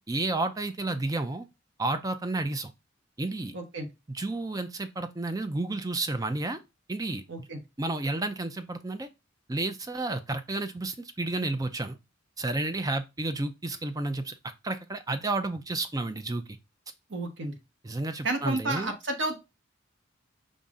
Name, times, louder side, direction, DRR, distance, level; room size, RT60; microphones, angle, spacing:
voice 1, 0.0-1.4 1.8-2.7 3.2-3.5 4.1-6.6 6.9-7.5 7.8-9.1 9.5-12.0 12.4-14.3 14.6-16.6 17.8-18.9, right 2 dB, 15° right, 0.5 m, -31 dB
voice 2, 3.5-3.9 7.3-7.6 17.1-17.6 18.2-19.4, right 2 dB, 60° right, 1.1 m, -31 dB
5.4 x 2.6 x 3.6 m
head